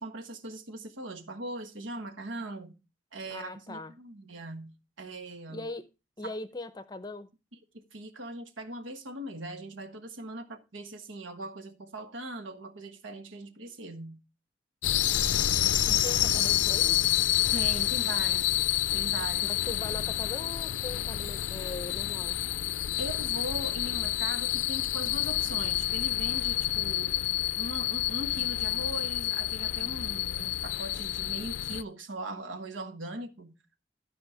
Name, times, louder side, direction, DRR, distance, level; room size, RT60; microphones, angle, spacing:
voice 1, 0.0-2.8 3.1-5.7 6.2-6.3 7.7-14.2 17.5-18.5 18.9-19.5 23.0-27.1 27.6-33.5, right 1 dB, 90° right, 1.3 m, -40 dB
voice 2, 3.3-3.9 5.5-5.9 6.2-7.3 15.8-17.0 19.4-22.4, left 2 dB, 20° left, 0.6 m, -40 dB
sound 1, 14.8-31.8, left 14 dB, 80° left, 0.4 m, -28 dB
12.5 x 4.9 x 5.0 m
head